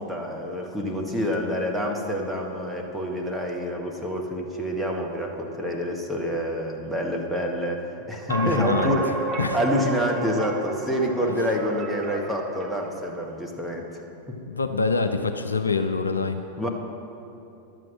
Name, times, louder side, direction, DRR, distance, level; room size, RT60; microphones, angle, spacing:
voice 1, 0.0-9.1 9.5-14.0 14.3-14.4 16.6-16.7, equal, ahead, -1 dB, 1.3 m, -27 dB
voice 2, 8.3-9.0 9.4-9.6 14.5-16.4, left 4 dB, 75° left, 8 dB, 0.5 m, -25 dB
sound 1, 8.3-13.1, right 4 dB, 30° right, 0.8 m, -32 dB
11.0 x 7.6 x 6.1 m, 2.8 s
figure-of-eight pair, 90°, 0 cm